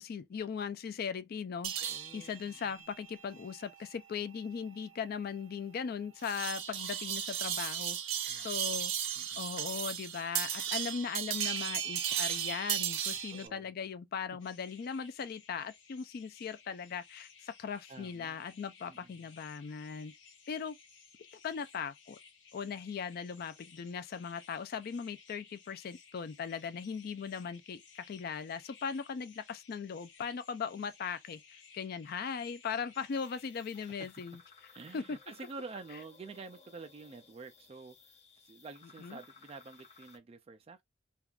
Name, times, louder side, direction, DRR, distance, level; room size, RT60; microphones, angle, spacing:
voice 1, 0.0-8.0 8.4-8.9 9.4-20.1 20.5-20.8 21.4-22.2 22.5-31.4 31.7-34.4 34.9-35.2 39.0-39.2, left 6 dB, 55° left, 0.4 m, -39 dB
sound 1, 1.6-13.5, right 9 dB, 90° right, 0.6 m, -36 dB
voice 2, 1.8-2.9 8.2-8.8 9.2-9.4 13.3-13.7 17.9-18.5 18.9-19.1 33.9-34.1 34.7-38.2 38.4-40.8, right 4 dB, 30° right, 0.3 m, -49 dB
sound 2, 14.4-34.1, left 6 dB, 70° left, 0.9 m, -59 dB
sound 3, 33.1-40.2, left 5 dB, 35° left, 0.8 m, -59 dB
3.5 x 2.4 x 2.3 m
head